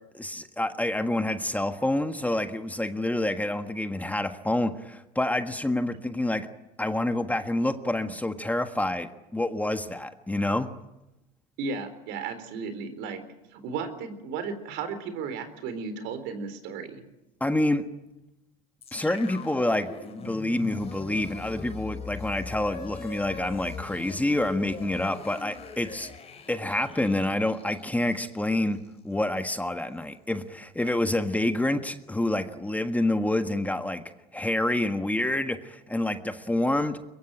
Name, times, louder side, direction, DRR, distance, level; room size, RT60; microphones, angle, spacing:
voice 1, 0.1-6.5 6.8-10.7 17.4-17.8 18.9-19.9 20.2-26.1 26.5-34.0 34.3-37.0, left 1 dB, 5° left, 8 dB, 1.6 m, -27 dB
voice 2, 11.6-13.2 13.5-17.0, right 5 dB, 65° right, 10 dB, 4.1 m, -34 dB
sound 1, 18.8-29.0, left 5 dB, 30° left, 4.1 m, -41 dB
23.0 x 22.5 x 9.0 m, 0.96 s
supercardioid pair, 95°, 20 cm